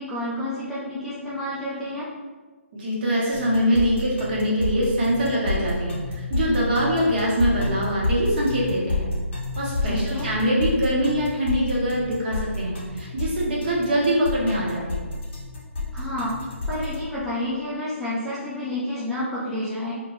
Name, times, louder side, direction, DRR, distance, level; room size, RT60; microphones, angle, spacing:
voice 1, 0.0-2.1 9.8-10.3 15.9-16.4 16.7-19.9, left 1 dB, ahead, -12 dB, 0.3 m, -29 dB
voice 2, 2.7-9.1 9.6-15.0, equal, 40° right, -5 dB, 0.8 m, -23 dB
sound 1, 3.3-17.0, left 3 dB, 55° left, 0.6 m, -29 dB
2.1 x 2.1 x 3.0 m, 1.4 s
figure-of-eight pair, 145°, 7 cm